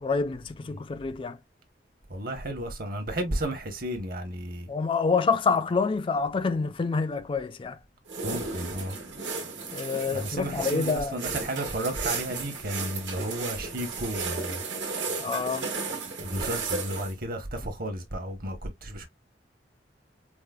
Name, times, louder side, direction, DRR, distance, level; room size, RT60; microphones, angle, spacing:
voice 1, 0.0-1.4 4.7-7.8 9.7-11.2 15.2-15.7, left 4 dB, 30° left, 0.3 m, -27 dB
voice 2, 2.1-4.7 8.2-9.0 10.1-14.6 16.2-19.1, right 1 dB, 50° right, 1.0 m, -33 dB
sound 1, 8.1-17.1, right 4 dB, 75° right, 1.2 m, -34 dB
4.7 x 2.0 x 2.3 m
head